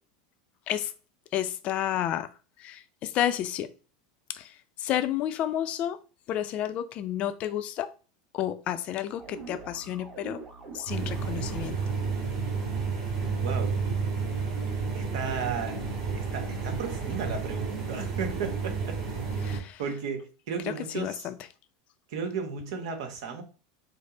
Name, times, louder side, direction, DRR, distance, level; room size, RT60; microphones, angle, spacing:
voice 1, 1.3-2.3 2.6-3.7 4.3-6.0 6.3-7.9 8.3-10.4 10.7-11.8 19.4-19.8 20.6-21.4, left 11 dB, 40° left, 0.4 m, -31 dB
sound 1, 9.1-12.2, right 3 dB, 30° right, 1.3 m, -44 dB
sound 2, 10.9-19.6, right 5 dB, 50° right, 2.0 m, -31 dB
voice 2, 13.4-13.8 14.9-15.8 16.1-19.0 19.8-21.3 22.1-23.4, right 6 dB, 70° right, 1.0 m, -34 dB
5.3 x 2.0 x 3.7 m
supercardioid pair, 130°, 3 cm